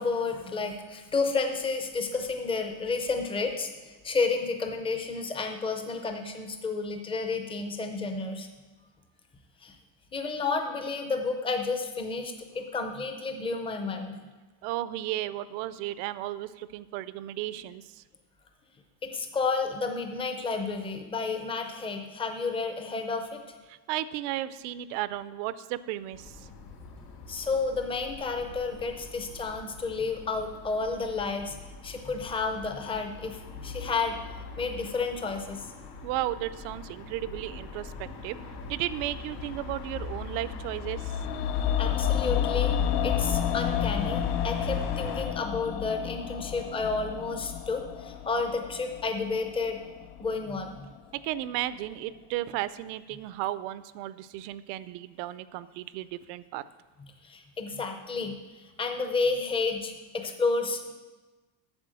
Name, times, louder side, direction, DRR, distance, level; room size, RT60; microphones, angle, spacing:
voice 1, 0.0-8.5 9.6-9.8 10.1-14.2 19.0-23.4 27.3-31.6 31.8-34.2 34.6-35.6 41.8-42.7 43.0-49.8 50.2-50.9 57.2-60.9, left 4 dB, 10° left, 6 dB, 0.4 m, -31 dB
voice 2, 14.6-18.0 23.7-26.5 36.0-38.4 38.7-41.1 51.1-56.6, right 14 dB, 75° right, 16 dB, 0.6 m, -34 dB
sound 1, 26.1-45.2, left 3 dB, 80° left, 3.2 m, -40 dB
sound 2, 40.8-51.0 51.2-51.3, left 10 dB, 55° left, 0.6 m, -31 dB
8.9 x 6.8 x 7.6 m, 1.2 s
cardioid pair, 180°, 49 cm